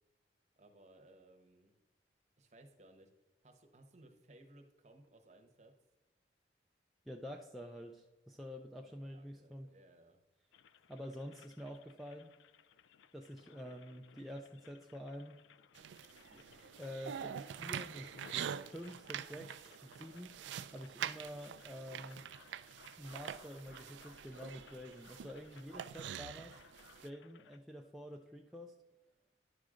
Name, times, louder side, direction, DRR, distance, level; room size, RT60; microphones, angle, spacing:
voice 1, 0.6-1.7 2.4-3.1 3.4-5.7 8.8-10.2, right 1 dB, 35° right, 4 dB, 0.9 m, -61 dB
voice 2, 7.1-9.7 10.9-12.3 13.1-15.4 16.3-16.5 16.8-20.5 20.7-22.2 23.0-26.6 27.0-28.7, equal, ahead, 0 dB, 0.4 m, -48 dB
sound 1, 10.5-27.6, left 7 dB, 80° left, 0.4 m, -63 dB
sound 2, 15.7-27.1, right 9 dB, 75° right, 0.3 m, -45 dB
10.5 x 6.3 x 3.7 m, 1.1 s
head